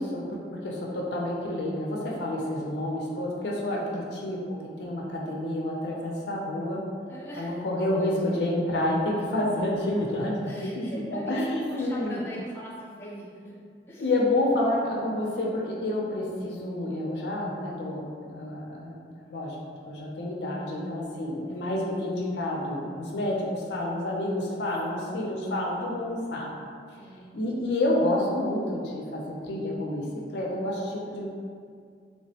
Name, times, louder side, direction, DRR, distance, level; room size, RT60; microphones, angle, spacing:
voice 1, 0.0-4.4 4.8-6.8 7.4-12.2 14.0-18.0 18.3-19.0 19.3-19.6 19.9-26.5 27.3-30.1 30.3-31.3, left 1 dB, 65° left, -3 dB, 0.4 m, -29 dB
voice 2, 7.1-7.6 7.9-8.4 9.7-9.8 10.5-13.6 13.9-14.1 21.6-21.8 24.9-25.3 26.9-27.2 31.0-31.3, equal, 15° left, -8 dB, 0.5 m, -43 dB
3.2 x 2.0 x 2.7 m, 2.2 s
head